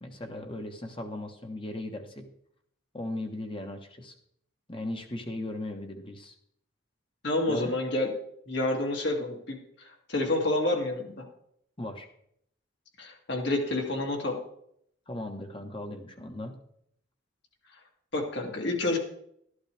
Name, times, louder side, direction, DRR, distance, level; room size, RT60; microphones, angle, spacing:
voice 1, 0.0-2.3 2.9-4.1 4.7-6.3 7.5-7.7 11.8-12.1 15.1-16.6, left 1 dB, 25° left, 4 dB, 1.2 m, -37 dB
voice 2, 7.2-8.1 8.5-11.2 13.0-14.4 18.1-19.0, left 2 dB, 60° left, 1 dB, 2.5 m, -29 dB
13.0 x 11.5 x 3.4 m, 0.69 s
head